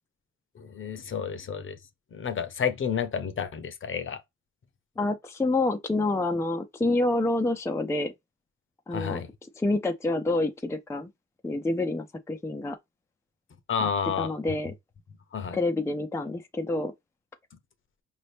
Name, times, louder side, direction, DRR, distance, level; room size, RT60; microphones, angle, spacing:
voice 1, 0.6-1.8 2.1-4.2 8.9-9.3 13.7-14.3 15.3-15.6, left 7 dB, 40° left, 0.8 m, -30 dB
voice 2, 5.0-8.1 8.9-9.2 9.6-11.1 11.4-12.8 13.8-14.7 15.5-16.9, left 2 dB, 10° left, 0.5 m, -28 dB
5.2 x 2.7 x 3.4 m
cardioid pair, 90°, 30 cm